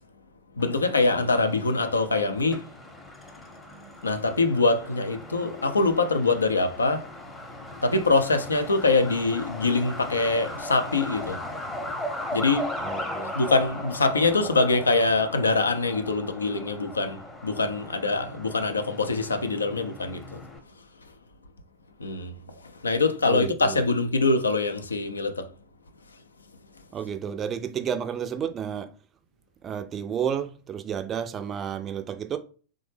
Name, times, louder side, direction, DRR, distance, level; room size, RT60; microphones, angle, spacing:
voice 1, 0.6-2.7 4.0-7.1 7.8-11.4 12.3-12.7 13.3-20.4 22.0-22.3 22.8-25.5, left 3 dB, 75° left, 0.4 m, -24 dB
Truck, 0.6-20.6, left 1 dB, 10° left, 0.7 m, -38 dB
voice 2, 12.8-13.3 23.3-23.8 26.9-28.9 29.6-32.4, right 8 dB, 25° right, 0.4 m, -31 dB
3.2 x 2.0 x 3.2 m
figure-of-eight pair, 90°, 0 cm